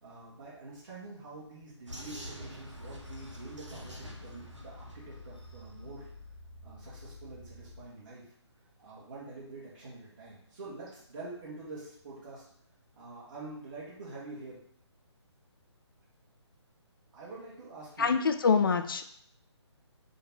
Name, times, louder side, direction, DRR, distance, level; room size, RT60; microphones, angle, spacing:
voice 1, 0.0-6.1 6.6-8.3 8.8-12.5 12.9-14.6 17.1-18.2, right 3 dB, 50° right, -9 dB, 1.6 m, -46 dB
Vehicle, 1.9-5.8, equal, 90° right, 1.2 m, -47 dB
sound 1, 2.7-7.8, left 2 dB, 20° right, 1.2 m, -49 dB
voice 2, 18.0-19.2, left 5 dB, 50° left, 8 dB, 0.4 m, -26 dB
3.6 x 2.8 x 4.6 m, 0.65 s
figure-of-eight pair, 145°, 15 cm